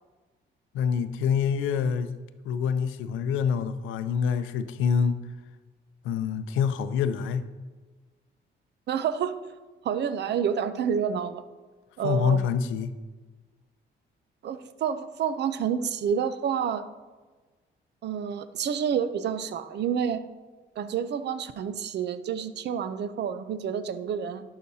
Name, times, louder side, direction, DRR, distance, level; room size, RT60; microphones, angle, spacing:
voice 1, 0.7-2.1 2.4-5.2 6.0-7.5 12.0-12.9, left 7 dB, 90° left, 11 dB, 0.5 m, -26 dB
voice 2, 8.9-9.4 9.8-11.4 12.0-12.4 14.4-16.8 18.0-20.2 20.8-24.4, right 7 dB, 60° right, 13 dB, 0.6 m, -29 dB
11.0 x 5.9 x 2.8 m, 1.3 s
cardioid pair, 90°, 20 cm